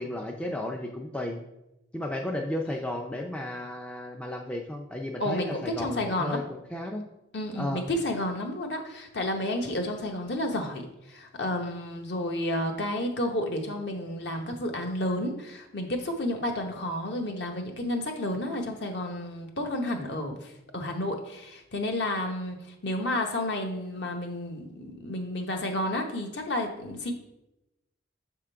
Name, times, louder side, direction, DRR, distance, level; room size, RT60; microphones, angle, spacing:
voice 1, 0.0-1.4 1.9-7.0 7.6-7.9, left 1 dB, 5° left, 1 dB, 0.3 m, -33 dB
voice 2, 5.2-6.4 7.3-10.8 11.1-22.6 22.8-27.1, left 1 dB, 55° left, 3 dB, 0.8 m, -31 dB
6.7 x 3.7 x 4.4 m, 0.91 s
head